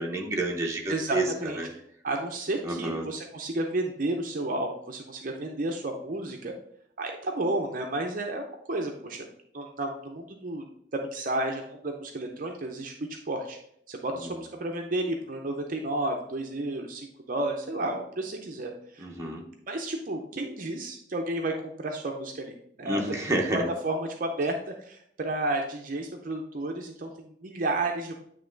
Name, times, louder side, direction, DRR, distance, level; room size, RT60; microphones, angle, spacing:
voice 1, 0.0-1.7 2.6-3.1 14.1-14.3 19.0-19.5 22.8-23.7, right 2 dB, 15° right, -1 dB, 0.9 m, -29 dB
voice 2, 0.9-1.6 2.0-6.5 7.0-9.3 9.5-10.6 10.9-13.6 13.9-19.1 19.7-23.0 23.3-28.1, right 2 dB, 45° right, 3 dB, 0.6 m, -32 dB
9.1 x 3.1 x 3.8 m, 0.71 s
head